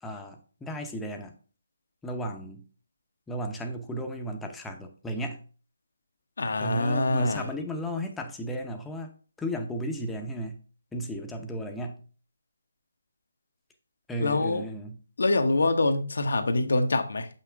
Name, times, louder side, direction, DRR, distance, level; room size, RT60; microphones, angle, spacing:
voice 1, 0.0-1.3 2.0-2.6 3.3-5.4 6.6-10.6 10.9-12.0 14.1-15.0, equal, 5° left, 0.8 m, -34 dB
voice 2, 6.4-7.5 14.2-14.6 15.2-17.3, left 2 dB, 70° left, 1.0 m, -25 dB
7.5 x 5.7 x 3.5 m
figure-of-eight pair, 150°, 0 cm